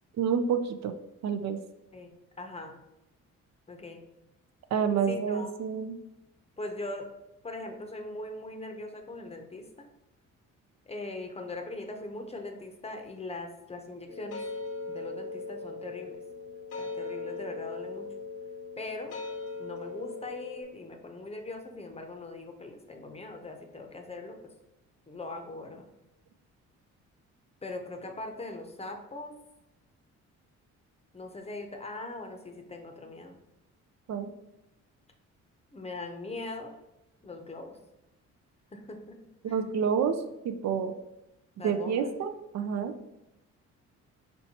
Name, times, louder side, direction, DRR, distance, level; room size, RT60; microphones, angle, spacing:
voice 1, 0.2-0.9 1.2-1.6 4.7-5.9 34.1-34.3 39.4-40.1 40.4-40.9 41.6-42.9, right 7 dB, 60° right, 7 dB, 0.5 m, -28 dB
voice 2, 1.9-2.8 3.7-4.0 5.1-5.5 6.6-7.1 7.4-9.6 10.9-14.4 14.9-16.2 16.8-18.1 18.8-19.2 19.6-24.4 25.1-25.9 27.6-29.3 31.1-33.4 35.7-36.7 37.2-37.8 38.7-39.2 39.5-39.6 41.6-42.1, left 2 dB, 20° left, 4 dB, 0.7 m, -40 dB
sound 1, 14.1-20.6, left 3 dB, 55° left, 0.7 m, -39 dB
4.4 x 4.3 x 2.8 m, 0.92 s
cardioid pair, 90°, 30 cm